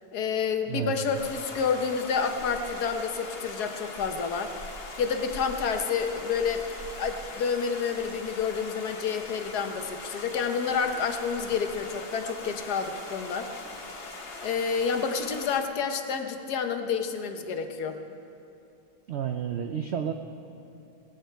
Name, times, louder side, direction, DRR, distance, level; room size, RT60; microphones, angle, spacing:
voice 1, 0.1-4.5 5.0-6.7 7.0-13.5 14.4-18.0, left 6 dB, 75° left, 7 dB, 1.4 m, -29 dB
voice 2, 0.7-1.1 19.1-20.1, right 8 dB, 70° right, 6 dB, 0.6 m, -31 dB
sound 1, 1.1-15.6, left 2 dB, 40° left, 1.3 m, -41 dB
18.0 x 15.0 x 4.5 m, 2.7 s
omnidirectional pair, 1.8 m